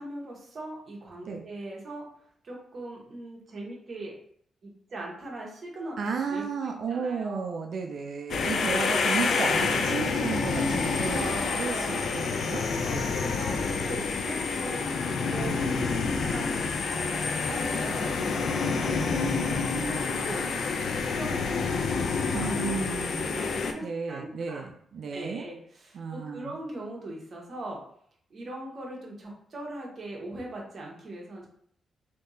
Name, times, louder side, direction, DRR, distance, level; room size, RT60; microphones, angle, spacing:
voice 1, 0.0-2.1 2.4-4.2 4.6-5.9 6.3-7.5 8.4-8.9 11.1-12.0 12.8-15.7 16.1-24.6 25.1-27.8 28.3-31.5, right 1 dB, 50° right, -2 dB, 1.1 m, -40 dB
voice 2, 6.0-13.1 22.3-23.4 23.8-25.4 25.9-26.5, right 5 dB, 65° right, 3 dB, 0.4 m, -33 dB
sound 1, 8.3-23.7, left 4 dB, 70° left, 0.4 m, -28 dB
3.5 x 2.8 x 2.7 m, 0.63 s
cardioid pair, 95°, 0 cm